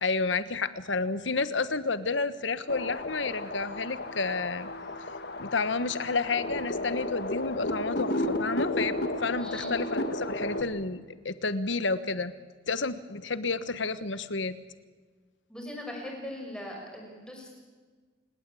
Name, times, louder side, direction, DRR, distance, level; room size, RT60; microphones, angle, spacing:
voice 1, 0.0-4.7 5.4-8.9 9.2-12.3 12.7-14.6, left 4 dB, 75° left, 13 dB, 1.3 m, -30 dB
sound 1, 2.7-10.6, left 1 dB, 55° left, 1.8 m, -33 dB
voice 2, 9.4-9.7 15.5-17.5, left 1 dB, 5° left, 0 dB, 6.3 m, -40 dB
29.0 x 19.0 x 8.5 m, 1.4 s
head